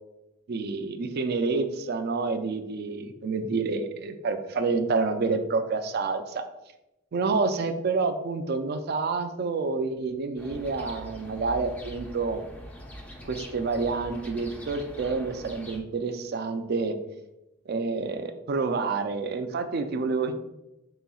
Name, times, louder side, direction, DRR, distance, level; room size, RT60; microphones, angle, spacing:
voice 1, 0.5-6.4 7.1-12.4 13.3-16.9 17.7-20.3, right 4 dB, 50° right, 8 dB, 0.4 m, -28 dB
sound 1, 10.4-15.8, equal, 10° left, 0.4 m, -43 dB
4.0 x 3.7 x 2.3 m, 0.92 s
head